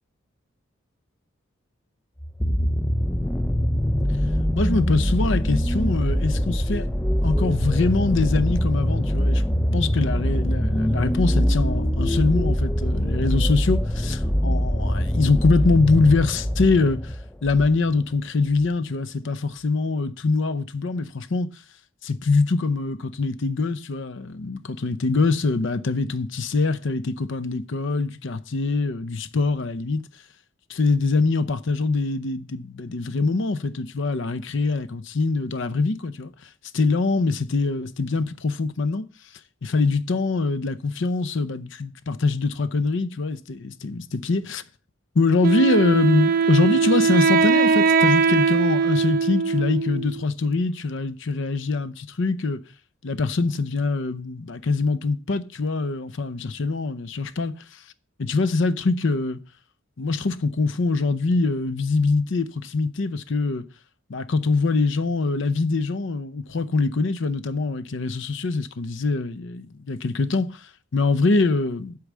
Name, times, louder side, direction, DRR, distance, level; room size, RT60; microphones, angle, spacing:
sound 1, 2.2-17.8 18.6-18.7, equal, 5° left, 0.4 m, -23 dB
voice 1, 4.6-6.9 7.2-9.4 9.7-17.1 17.4-21.5 22.0-30.0 30.7-36.3 36.7-39.1 39.6-44.6 45.1-52.6 53.0-57.8 58.2-59.4 60.0-63.6 64.1-72.0, left 3 dB, 60° left, 0.6 m, -23 dB
Wind instrument woodwind instrument, 45.4-50.2, right 5 dB, 45° right, 0.6 m, -20 dB
8.2 x 4.8 x 7.3 m
head